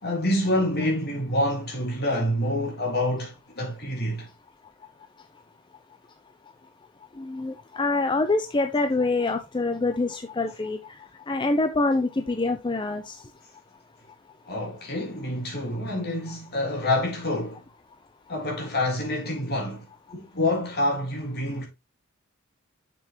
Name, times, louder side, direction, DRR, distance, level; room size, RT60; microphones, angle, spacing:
voice 1, 0.0-4.3 14.5-17.6 18.3-21.7, left 1 dB, 50° left, 3.3 m, -27 dB
voice 2, 7.2-11.0 11.3-13.2, left 3 dB, 25° left, 0.5 m, -25 dB
6.9 x 6.9 x 2.9 m
head